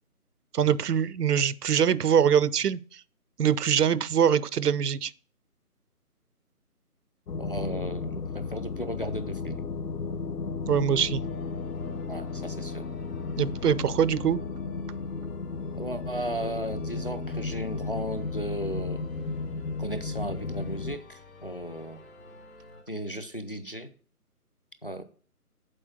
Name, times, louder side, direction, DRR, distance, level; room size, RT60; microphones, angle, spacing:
voice 1, 0.5-3.0 3.4-5.1 10.7-11.2 13.4-14.4, right 8 dB, 80° right, 0.6 m, -23 dB
sound 1, 7.3-21.0, left 4 dB, 85° left, 0.9 m, -34 dB
voice 2, 7.4-9.7 12.1-12.9 15.7-19.0 19.8-22.0 22.9-23.9 24.8-25.0, equal, 40° left, 0.5 m, -35 dB
sound 2, 11.2-22.8, left 1 dB, 65° left, 3.3 m, -50 dB
7.6 x 4.4 x 6.4 m
figure-of-eight pair, 165°, 46 cm